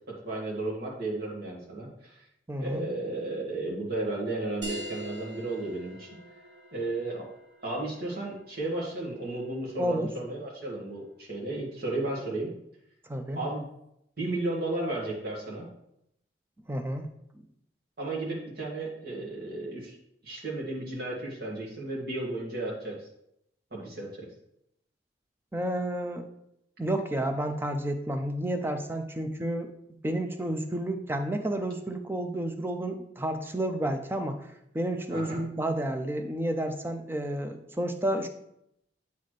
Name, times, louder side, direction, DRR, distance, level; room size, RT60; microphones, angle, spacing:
voice 1, 0.2-2.2 2.6-6.1 6.7-7.3 7.6-12.5 13.3-13.6 14.2-15.7 18.0-20.0 20.2-22.9 23.7-24.3 35.1-35.4, right 2 dB, 55° right, -4 dB, 1.9 m, -33 dB
voice 2, 2.5-2.8 9.8-10.1 13.1-13.4 16.7-17.1 25.5-26.3 26.8-29.7 30.0-34.4 34.7-38.3, right 1 dB, 10° right, 6 dB, 0.5 m, -30 dB
sound 1, 4.6-9.7, right 1 dB, 80° right, 1.2 m, -44 dB
8.2 x 4.1 x 3.2 m, 0.78 s
head